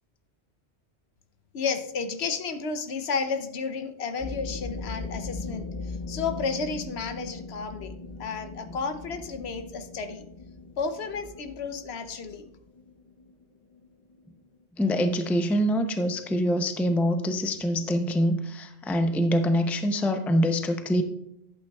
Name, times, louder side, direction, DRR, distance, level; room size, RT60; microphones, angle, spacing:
voice 1, 1.5-10.2 10.8-12.5, left 5 dB, 70° left, 8 dB, 1.0 m, -32 dB
sound 1, 4.2-14.5, left 3 dB, 35° left, 0.7 m, -39 dB
voice 2, 14.8-21.0, equal, ahead, 6 dB, 0.4 m, -25 dB
11.5 x 8.6 x 2.3 m, 0.80 s
omnidirectional pair, 1.1 m